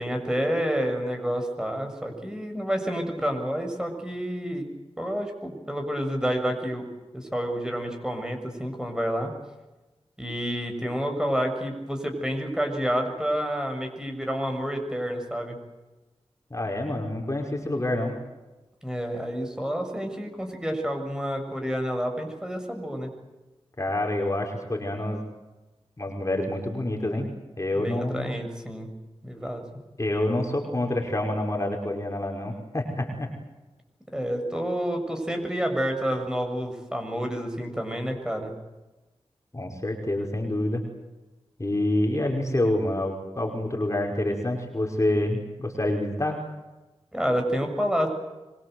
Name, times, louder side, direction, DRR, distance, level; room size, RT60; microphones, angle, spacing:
voice 1, 0.0-4.7 5.0-6.8 7.1-9.3 10.2-15.5 18.8-23.1 27.7-28.9 29.2-29.6 34.1-38.5 47.1-48.1, equal, 5° right, 4 dB, 6.8 m, -29 dB
voice 2, 16.5-18.2 23.8-25.2 26.0-27.3 27.6-28.3 30.0-33.3 39.5-40.8 41.6-46.4, left 1 dB, 30° left, 1 dB, 5.5 m, -27 dB
25.0 x 23.5 x 8.1 m, 1.1 s
wide cardioid pair, 60°, 11 cm